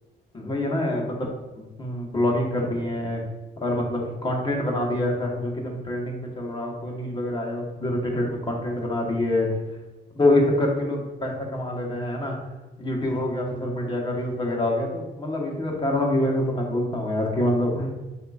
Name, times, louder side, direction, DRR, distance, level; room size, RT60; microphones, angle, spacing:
voice 1, 0.3-1.3 1.5-3.2 3.6-9.5 10.1-12.4 12.8-17.9, left 1 dB, 25° left, -1 dB, 1.2 m, -26 dB
7.6 x 2.6 x 2.4 m, 1.1 s
cardioid pair, 90°, 20 cm